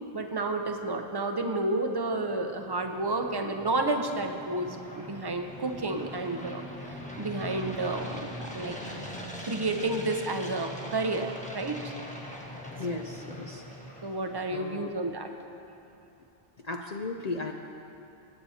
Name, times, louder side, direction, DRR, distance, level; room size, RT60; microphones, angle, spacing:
voice 1, 0.1-6.6 7.2-8.3 8.5-8.8 9.4-11.9 14.0-15.3, right 2 dB, 25° right, 5 dB, 0.6 m, -30 dB
sound 1, 2.4-14.5, equal, 5° left, 1.2 m, -42 dB
voice 2, 12.8-13.6 14.5-14.9 16.6-17.5, left 3 dB, 50° left, 2 dB, 0.5 m, -35 dB
23.5 x 8.5 x 2.8 m, 2.8 s
omnidirectional pair, 1.0 m